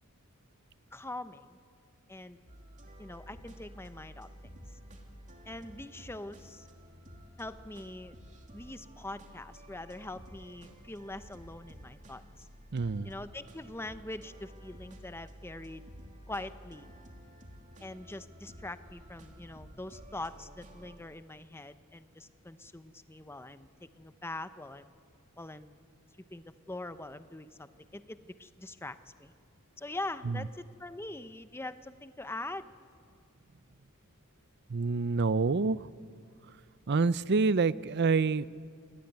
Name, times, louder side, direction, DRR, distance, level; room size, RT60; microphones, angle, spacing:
voice 1, 0.9-1.6 2.1-2.4 3.0-4.3 5.5-6.7 7.4-8.1 8.5-12.5 13.0-15.9 16.3-16.9 17.8-23.7 24.0-24.8 25.4-25.8 26.3-29.3 29.8-32.7, left 2 dB, 10° left, 12 dB, 0.8 m, -43 dB
sound 1, 2.5-21.0, equal, 35° right, 2.8 m, -52 dB
voice 2, 12.7-13.1 30.3-30.4 34.7-35.8 36.9-38.5, right 4 dB, 50° right, 17 dB, 0.6 m, -27 dB
28.0 x 19.5 x 9.5 m, 2.2 s
head